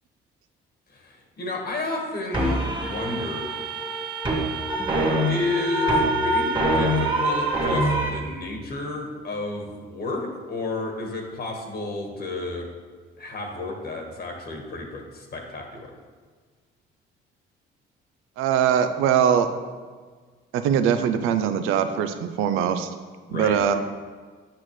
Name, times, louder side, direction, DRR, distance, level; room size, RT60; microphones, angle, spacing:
voice 1, 0.9-3.5 5.3-12.7 13.2-15.9 23.3-23.6, left 2 dB, 50° left, 1 dB, 1.4 m, -31 dB
sound 1, 2.3-8.1, right 1 dB, 25° right, 1.8 m, -24 dB
voice 2, 18.4-19.5 20.5-22.9 23.3-23.7, right 8 dB, 85° right, 9 dB, 0.5 m, -22 dB
8.6 x 5.9 x 3.1 m, 1.5 s
cardioid pair, 80°, 21 cm